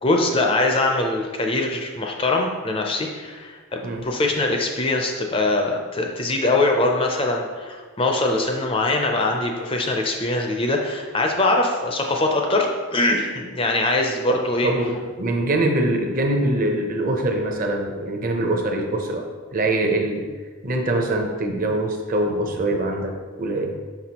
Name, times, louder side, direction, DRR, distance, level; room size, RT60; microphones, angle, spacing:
voice 1, 0.0-14.7, left 2 dB, 25° left, 2 dB, 0.5 m, -22 dB
voice 2, 14.6-19.2 19.5-20.2 20.6-23.8, right 1 dB, 40° right, 3 dB, 0.6 m, -23 dB
5.9 x 5.7 x 2.9 m, 1.5 s
head